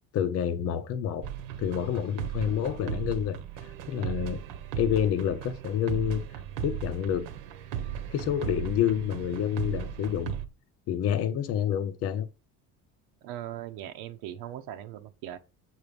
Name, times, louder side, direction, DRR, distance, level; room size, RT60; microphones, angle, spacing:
voice 1, 0.1-1.3 1.6-3.4 3.6-4.4 4.8-6.2 6.6-7.3 8.1-10.3 10.9-12.3, left 9 dB, 45° left, 0.7 m, -28 dB
sound 1, 1.2-10.5, right 9 dB, 60° right, 1.1 m, -36 dB
voice 2, 13.2-15.4, right 12 dB, 85° right, 1.0 m, -39 dB
8.2 x 4.6 x 5.2 m
cardioid pair, 175°, 34 cm